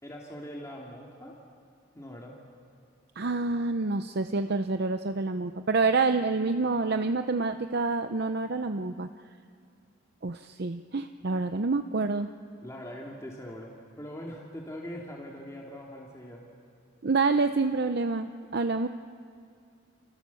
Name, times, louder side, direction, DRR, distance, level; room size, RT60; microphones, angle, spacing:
voice 1, 0.0-1.4 1.9-2.4 11.9-12.0 12.6-16.4, equal, 15° left, -2 dB, 2.4 m, -42 dB
voice 2, 3.2-9.1 10.2-12.3 17.0-18.9, right 3 dB, 55° right, 8 dB, 0.7 m, -27 dB
29.5 x 28.0 x 7.1 m, 2.3 s
head